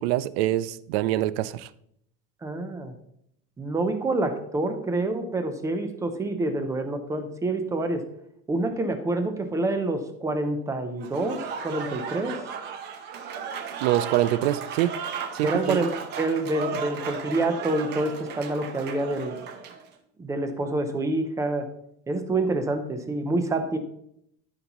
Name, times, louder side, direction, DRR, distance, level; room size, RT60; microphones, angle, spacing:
voice 1, 0.0-1.7 13.8-15.0 15.3-15.9, right 14 dB, 75° right, 0.5 m, -25 dB
voice 2, 2.4-2.9 3.6-8.0 8.5-12.4 15.4-19.4 20.2-21.7 22.1-23.8, right 2 dB, 10° right, 0.5 m, -27 dB
Applause / Crowd, 11.0-19.8, right 6 dB, 35° right, 0.8 m, -35 dB
13.5 x 5.4 x 3.0 m
cardioid pair, 175°, 31 cm